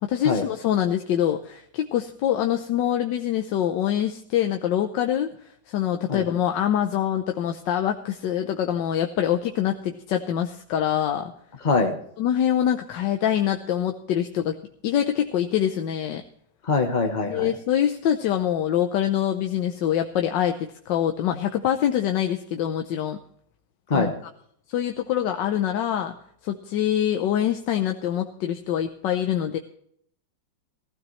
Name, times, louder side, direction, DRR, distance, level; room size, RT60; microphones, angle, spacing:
voice 1, 0.0-5.3 5.7-11.3 12.2-16.2 17.3-23.2 23.9-24.1 24.7-26.1 26.4-29.6, left 10 dB, 85° left, 5 dB, 1.4 m, -25 dB
voice 2, 11.6-12.0 16.6-17.5 23.9-24.1, left 3 dB, 35° left, 4 dB, 0.9 m, -23 dB
15.5 x 15.0 x 3.1 m, 0.66 s
omnidirectional pair, 1.9 m